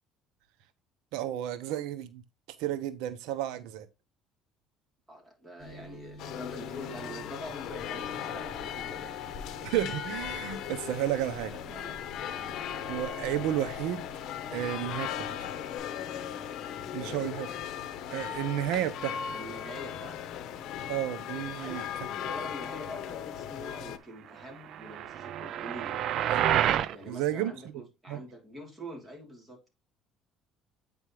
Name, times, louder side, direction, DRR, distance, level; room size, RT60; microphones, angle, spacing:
voice 1, 1.1-2.2 2.6-3.9 9.6-11.5 12.8-14.1 14.5-15.3 16.9-17.5 18.1-19.3 20.9-21.8 26.3-26.6 27.1-27.5 28.1-28.2, right 12 dB, 85° right, 0.8 m, -32 dB
voice 2, 5.1-9.2 11.0-12.0 12.3-12.6 16.8-17.3 19.3-20.3 21.5-21.9 22.2-26.0 26.9-29.7, right 1 dB, 15° right, 3.2 m, -45 dB
sound 1, 5.6-15.8, left 1 dB, 5° left, 5.3 m, -50 dB
sound 2, 6.2-24.0, left 9 dB, 60° left, 0.9 m, -38 dB
sound 3, 24.7-26.9, right 11 dB, 55° right, 0.5 m, -28 dB
8.6 x 5.3 x 3.1 m
cardioid pair, 135°, 0 cm